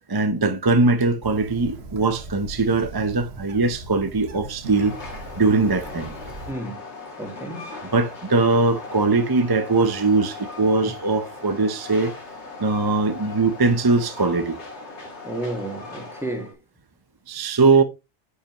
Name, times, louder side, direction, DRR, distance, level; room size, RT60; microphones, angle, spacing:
voice 1, 0.1-5.0 5.4-6.1 7.9-12.1 12.6-14.6 17.3-17.8, right 3 dB, 25° right, 0.6 m, -21 dB
Bird, 1.2-6.5, right 3 dB, 65° right, 1.3 m, -39 dB
Train, 4.6-16.5, left 3 dB, 70° left, 2.2 m, -39 dB
voice 2, 6.5-6.8 7.2-7.7 15.2-16.6, right 1 dB, ahead, 1.7 m, -32 dB
9.5 x 5.4 x 2.9 m
omnidirectional pair, 1.2 m